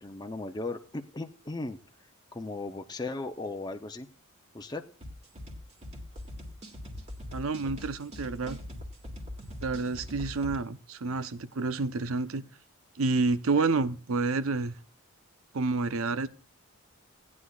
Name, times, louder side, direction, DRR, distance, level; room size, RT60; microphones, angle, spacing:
voice 1, 0.0-1.8 2.3-4.1 4.5-4.8, left 2 dB, 20° left, 0.6 m, -36 dB
sound 1, 5.0-10.6, left 1 dB, 30° right, 1.9 m, -42 dB
voice 2, 7.3-8.6 9.6-12.4 13.0-14.8 15.5-16.3, right 3 dB, 80° right, 0.7 m, -29 dB
18.0 x 9.6 x 2.4 m
head